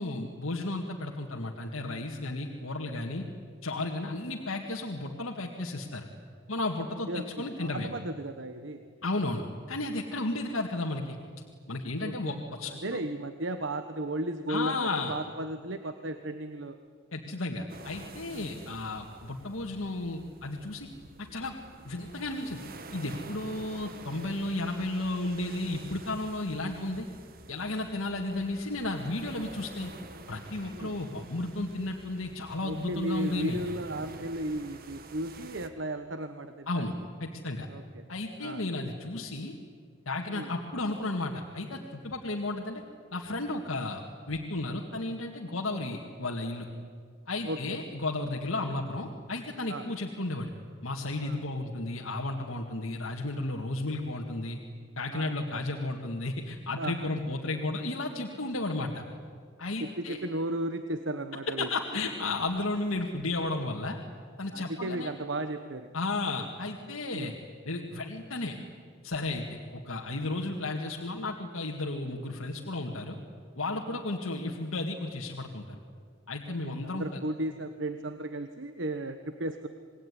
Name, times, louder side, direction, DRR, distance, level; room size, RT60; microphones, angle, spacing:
voice 1, 0.0-3.3 3.6-6.1 6.5-7.9 9.0-9.4 9.7-11.2 11.7-12.7 14.5-15.2 17.1-20.9 21.3-21.5 21.8-22.6 22.9-27.1 27.5-29.9 30.3-33.6 36.7-36.9 37.2-37.7 38.1-39.5 40.1-42.8 43.1-46.7 47.3-50.5 50.8-54.6 55.0-59.0 59.6-60.2 61.6-64.0 64.4-65.1 65.9-67.3 67.7-68.6 69.0-69.4 69.7-73.2 73.6-75.8 76.3-77.2, left 2 dB, 85° left, 0 dB, 2.1 m, -33 dB
voice 2, 7.6-8.8 12.0-12.4 12.6-16.8 18.3-18.6 30.7-31.0 32.6-36.9 37.7-38.1 38.4-38.6 40.3-40.5 47.4-47.8 49.7-49.8 51.2-51.4 55.1-55.3 56.8-57.1 59.8-61.7 64.5-65.9 67.1-67.4 73.9-74.0 76.6-79.7, right 1 dB, 60° right, 9 dB, 1.2 m, -35 dB
sound 1, 17.7-35.7, right 2 dB, 45° right, 1.8 m, -48 dB
27.5 x 20.5 x 10.0 m, 2.1 s
head